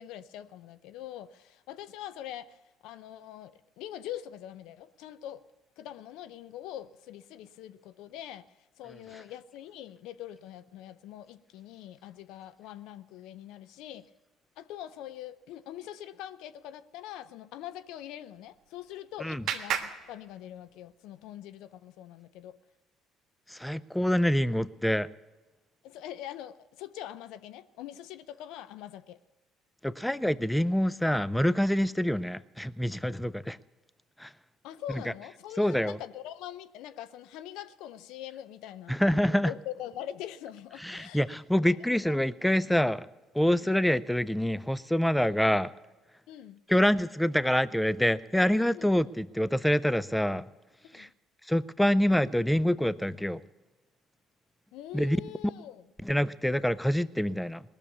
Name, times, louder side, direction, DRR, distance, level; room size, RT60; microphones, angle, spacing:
voice 1, 0.0-5.4 5.8-8.5 8.8-14.1 14.6-22.6 25.8-29.2 34.6-39.0 39.3-41.2 41.6-42.2 43.6-43.8 46.3-46.6 48.7-48.9 50.9-51.1 54.7-55.8, left 12 dB, 75° left, 0.5 m, -43 dB
Clapping, 18.3-21.0, right 8 dB, 65° right, 1.3 m, -37 dB
voice 2, 23.5-25.1 29.8-33.6 34.2-34.3 35.6-36.0 38.9-39.5 40.8-43.1 43.3-45.7 46.7-50.5 50.9-51.1 51.5-53.4 54.9-55.2 56.0-57.6, equal, 5° left, 0.4 m, -26 dB
19.5 x 6.9 x 8.3 m
supercardioid pair, 70°, 0 cm